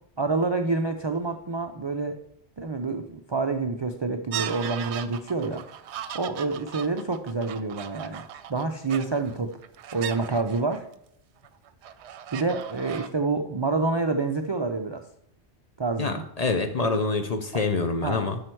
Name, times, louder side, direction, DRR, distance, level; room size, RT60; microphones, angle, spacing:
voice 1, 0.2-2.2 2.6-5.6 6.1-8.2 8.5-9.5 9.9-10.9 12.3-15.0 15.8-16.3 16.8-16.9 17.5-17.6 18.0-18.3, right 3 dB, 45° right, 5 dB, 0.3 m, -27 dB
sound 1, 4.3-10.9 11.4-13.1, right 10 dB, 80° right, 0.9 m, -38 dB
voice 2, 16.0-18.4, left 3 dB, 45° left, 7 dB, 0.6 m, -26 dB
7.7 x 5.6 x 4.5 m, 0.75 s
omnidirectional pair, 1.1 m